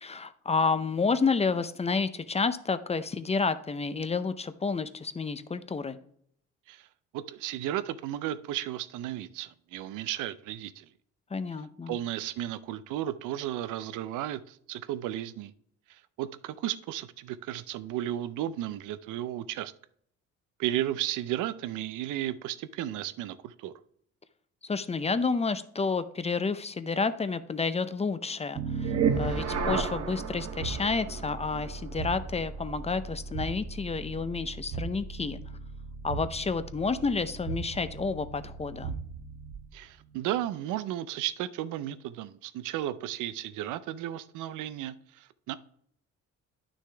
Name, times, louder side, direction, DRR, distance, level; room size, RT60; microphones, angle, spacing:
voice 1, 0.0-6.0 11.3-12.0 24.6-35.4 36.0-39.0, left 4 dB, 20° left, 0.5 m, -30 dB
voice 2, 7.1-10.9 11.9-15.5 15.9-19.7 20.6-23.7 39.7-45.5, right 12 dB, 90° right, 0.5 m, -34 dB
sound 1, 28.5-39.7, right 5 dB, 55° right, 1.2 m, -34 dB
9.6 x 6.2 x 3.4 m
cardioid pair, 90°, 30 cm